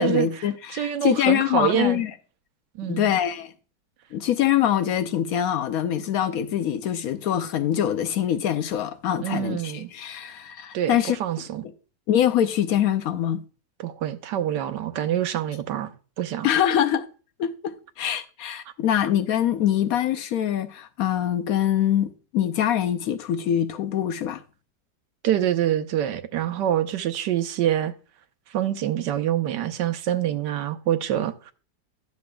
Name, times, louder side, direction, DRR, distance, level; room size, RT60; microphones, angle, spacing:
voice 1, 0.0-2.1 2.8-3.5 4.1-11.2 12.1-13.4 16.4-17.1 17.4-24.4, left 10 dB, 70° left, 0.9 m, -24 dB
voice 2, 0.7-2.0 2.8-3.1 9.2-9.9 10.7-11.6 13.8-15.9 16.2-16.5 25.2-27.9 28.5-31.5, right 11 dB, 90° right, 1.4 m, -25 dB
11.5 x 6.9 x 2.2 m
omnidirectional pair, 1.8 m